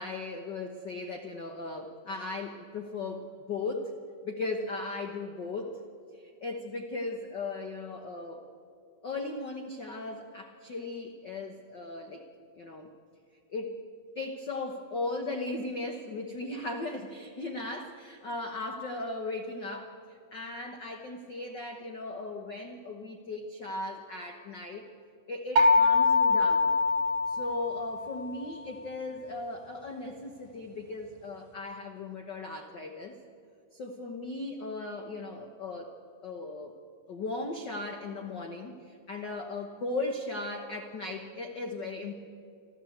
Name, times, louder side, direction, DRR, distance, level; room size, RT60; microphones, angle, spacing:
voice 1, 0.0-3.9 4.2-5.8 6.1-8.5 9.0-12.2 12.6-12.9 13.5-13.8 14.1-24.9 25.3-26.7 27.3-33.2 33.7-35.9 36.2-36.7 37.1-42.1, left 2 dB, 75° left, 4 dB, 1.0 m, -37 dB
sound 1, 25.6-28.3, left 3 dB, 75° right, 2.9 m, -24 dB
28.5 x 12.5 x 7.9 m, 2.4 s
omnidirectional pair, 3.8 m